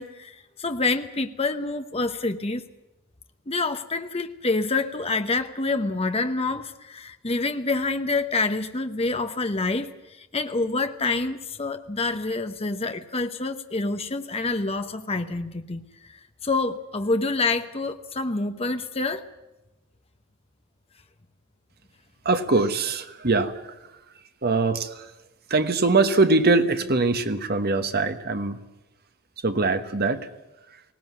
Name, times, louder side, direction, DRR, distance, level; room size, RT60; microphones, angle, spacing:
voice 1, 0.0-2.6 3.5-9.9 10.2-15.8 16.4-19.2, left 3 dB, 25° left, 8 dB, 0.9 m, -27 dB
voice 2, 22.2-23.8 24.4-25.1 25.5-28.6 29.4-30.3, right 3 dB, 45° right, 9 dB, 1.2 m, -22 dB
18.5 x 18.0 x 9.5 m, 0.98 s
head